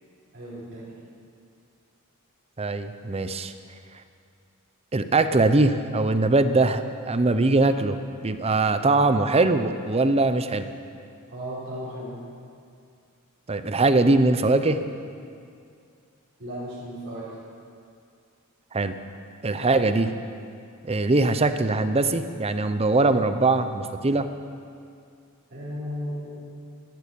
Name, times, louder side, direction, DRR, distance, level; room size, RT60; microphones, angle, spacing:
voice 1, 0.3-0.9 11.3-12.2 16.4-17.3 25.5-26.4, equal, 50° right, -11 dB, 4.1 m, -35 dB
voice 2, 2.6-3.5 4.9-10.7 13.5-14.8 18.7-18.9 19.4-20.1 20.8-24.3, right 2 dB, 25° right, 10 dB, 0.6 m, -21 dB
13.5 x 12.0 x 7.0 m, 2.4 s
head